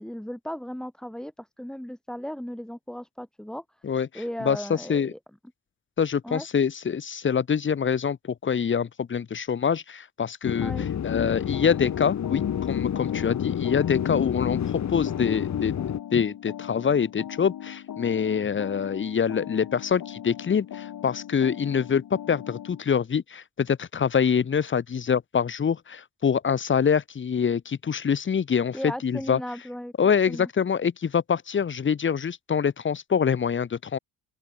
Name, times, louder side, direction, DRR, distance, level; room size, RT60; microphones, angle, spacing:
voice 1, 0.0-3.6 4.1-5.2 6.2-6.5 10.6-10.9 28.7-29.9 30.3-30.5, equal, ahead, 1.6 m, -36 dB
voice 2, 4.4-5.1 6.0-8.2 8.4-10.7 11.0-14.6 14.9-15.7 16.1-29.4 30.0-34.0, left 7 dB, 30° left, 1.0 m, -25 dB
sound 1, 10.4-16.0, left 9 dB, 50° left, 1.7 m, -29 dB
sound 2, 11.5-22.8, left 10 dB, 65° left, 6.9 m, -40 dB
open air
cardioid pair, 115°, 37 cm